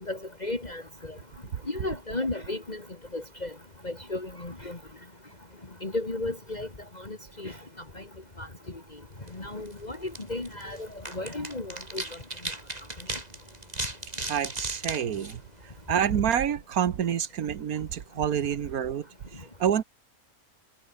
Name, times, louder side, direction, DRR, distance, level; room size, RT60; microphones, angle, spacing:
voice 1, 0.1-1.2 1.7-2.8 3.1-3.5 3.8-4.8 5.8-6.7 7.0-7.6 8.0-8.1 8.4-8.5 9.3-10.9 11.1-12.0, left 2 dB, 30° left, 2.4 m, -34 dB
sound 1, 9.2-16.1, right 2 dB, 25° right, 3.5 m, -38 dB
voice 2, 14.3-19.8, right 9 dB, 85° right, 1.6 m, -28 dB
omnidirectional pair, 1.5 m